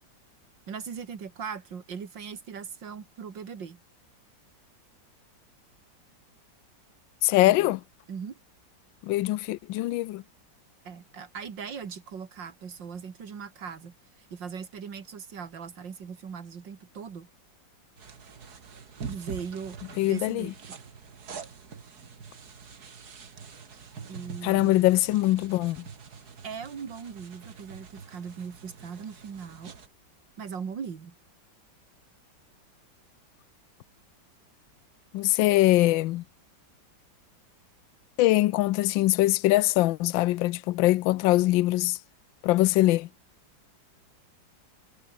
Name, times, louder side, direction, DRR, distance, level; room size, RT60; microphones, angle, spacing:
voice 1, 0.7-3.8 7.5-7.8 8.1-8.4 10.8-17.3 19.1-20.8 24.1-24.9 26.4-29.7 30.4-31.1, right 6 dB, 75° right, 2.8 m, -39 dB
voice 2, 7.2-7.8 9.0-10.2 20.0-20.5 24.4-25.8 35.1-36.2 38.2-42.0 42.4-43.1, left 17 dB, 85° left, 1.4 m, -23 dB
sound 1, 18.0-29.9, right 6 dB, 55° right, 2.4 m, -45 dB
omnidirectional pair, 2.0 m